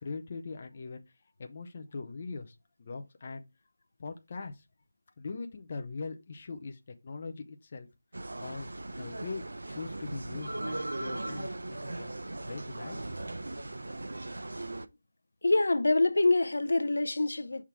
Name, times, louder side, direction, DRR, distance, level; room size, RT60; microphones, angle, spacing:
voice 1, 0.0-1.0 1.4-3.4 4.0-4.6 5.2-7.9 8.4-12.1 12.4-13.1, left 4 dB, 25° left, 0.6 m, -41 dB
sound 1, 8.1-14.9, right 2 dB, 85° right, 0.7 m, -38 dB
voice 2, 15.4-17.6, left 2 dB, 70° left, 0.6 m, -25 dB
5.9 x 3.6 x 4.5 m
figure-of-eight pair, 180°, 0 cm